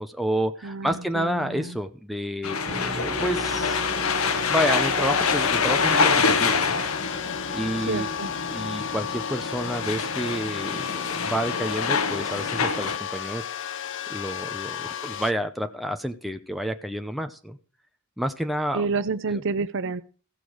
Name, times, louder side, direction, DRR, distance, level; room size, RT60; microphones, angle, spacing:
voice 1, 0.0-3.8 4.5-6.8 7.5-8.1 8.5-13.5 14.1-17.6 18.2-18.9 19.3-19.4, equal, ahead, 6 dB, 0.7 m, -29 dB
voice 2, 0.6-1.8 7.9-8.3 18.7-20.0, right 4 dB, 60° right, 14 dB, 0.7 m, -29 dB
sound 1, 2.4-13.0, left 5 dB, 80° left, 1.0 m, -26 dB
sound 2, 2.6-10.2, right 1 dB, 25° right, 1.4 m, -40 dB
sound 3, 3.7-15.3, left 9 dB, 60° left, 0.7 m, -34 dB
15.0 x 6.9 x 6.2 m, 0.38 s
head